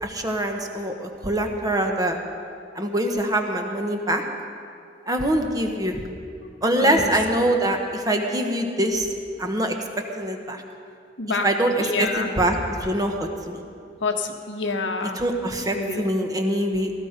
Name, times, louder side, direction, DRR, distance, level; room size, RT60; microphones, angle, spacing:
voice 1, 0.0-2.2 2.7-4.2 5.1-6.0 6.6-9.1 9.4-9.8 10.2-10.6 11.4-13.6 15.2-16.9, right 1 dB, 20° right, 3 dB, 1.3 m, -24 dB
voice 2, 6.8-7.1 7.4-7.5 11.2-11.5 11.8-12.3 14.0-15.2 15.7-16.1, left 3 dB, 85° left, 3 dB, 1.4 m, -27 dB
18.0 x 14.0 x 5.2 m, 2.3 s
head